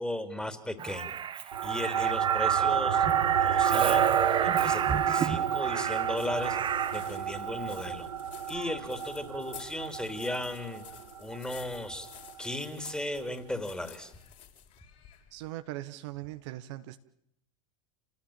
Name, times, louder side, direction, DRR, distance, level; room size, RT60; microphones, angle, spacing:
voice 1, 0.0-3.1 3.4-6.6 6.9-8.1 8.5-12.1 12.4-14.1, left 1 dB, 5° left, 9 dB, 3.5 m, -36 dB
Crow, 0.8-7.1 8.5-8.7, right 8 dB, 30° right, 1.5 m, -31 dB
sound 1, 1.5-12.3, right 8 dB, 80° right, 1.0 m, -30 dB
sound 2, 5.6-15.5, left 10 dB, 45° left, 6.2 m, -52 dB
voice 2, 15.3-17.0, right 16 dB, 60° right, 9 dB, 1.4 m, -40 dB
29.0 x 18.5 x 9.0 m, 0.74 s
figure-of-eight pair, 85°, 17 cm